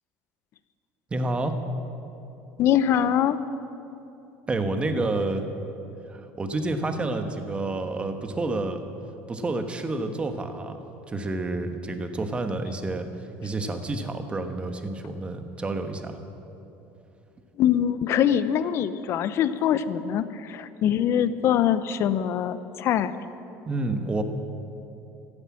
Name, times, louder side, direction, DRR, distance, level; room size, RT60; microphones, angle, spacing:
voice 1, 1.1-1.6 4.5-5.4 6.1-8.8 9.3-10.8 11.1-13.1 13.4-16.2 23.7-24.2, right 2 dB, 20° right, 6 dB, 1.2 m, -29 dB
voice 2, 2.6-3.4 17.6-23.1, left 9 dB, 50° left, 13 dB, 0.6 m, -23 dB
13.5 x 9.8 x 8.5 m, 2.9 s
cardioid pair, 125°, 6 cm